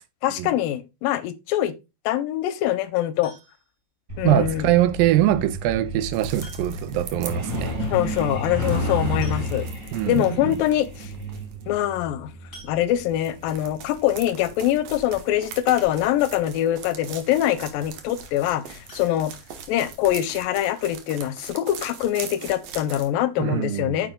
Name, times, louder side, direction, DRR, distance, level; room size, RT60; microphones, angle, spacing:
voice 1, 0.2-1.7 2.1-3.3 4.2-4.7 7.9-9.7 10.1-11.1 11.7-12.3 12.6-19.3 19.7-24.1, left 12 dB, 85° left, 2.3 m, -24 dB
sound 1, 3.2-3.9 5.3-5.4 6.4-7.0 7.3-7.4 7.7-7.8 8.8-8.9 9.2-9.9 10.5-10.6 10.9-11.1 12.5-13.4 18.8-20.0 20.4-20.5 20.9-21.0 21.4-21.5, equal, 20° left, 4.6 m, -49 dB
Truck, 4.1-16.4 17.6-17.8 18.2-18.4 18.7-19.0 19.3-19.4 19.9-20.0, equal, 20° right, 4.9 m, -31 dB
voice 2, 4.2-7.8 9.1-9.3 9.9-10.5 23.4-24.1, right 13 dB, 85° right, 2.4 m, -23 dB
sound 2, 6.1-11.6 13.1-23.1, right 7 dB, 65° right, 1.7 m, -41 dB
8.8 x 6.8 x 2.3 m
omnidirectional pair, 4.1 m